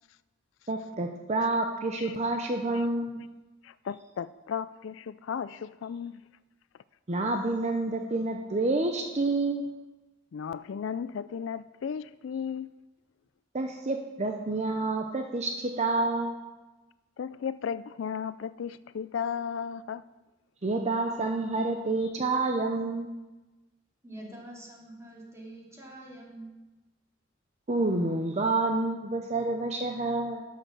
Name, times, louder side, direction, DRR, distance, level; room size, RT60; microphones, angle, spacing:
voice 1, 0.7-3.2 7.1-9.7 13.5-16.4 20.6-23.1 27.7-30.4, right 2 dB, 35° right, 0.7 m, -28 dB
voice 2, 3.6-6.2 10.3-12.7 17.2-20.0, left 7 dB, 70° left, 0.4 m, -35 dB
voice 3, 24.0-26.5, right 1 dB, 15° right, 2.7 m, -45 dB
11.5 x 6.7 x 6.3 m
head